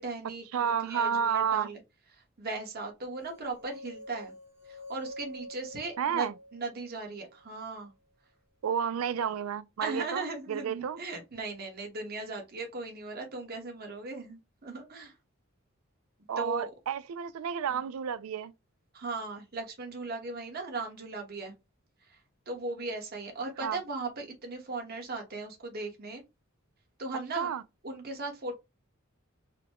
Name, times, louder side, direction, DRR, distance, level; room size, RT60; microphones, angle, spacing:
voice 1, 0.0-1.8 2.1-4.3 4.7-7.9 9.8-15.1 16.4-16.7 17.7-17.8 18.9-21.5 22.1-22.2 22.5-26.2 27.0-27.5 27.8-28.5, right 3 dB, 50° right, 1.3 m, -38 dB
voice 2, 0.5-1.7 6.0-6.3 8.6-11.0 16.3-18.5 23.6-23.8 27.4-27.6, right 7 dB, 90° right, 0.4 m, -31 dB
sound 1, 3.3-7.4, equal, 15° right, 0.8 m, -46 dB
4.0 x 2.2 x 2.9 m
head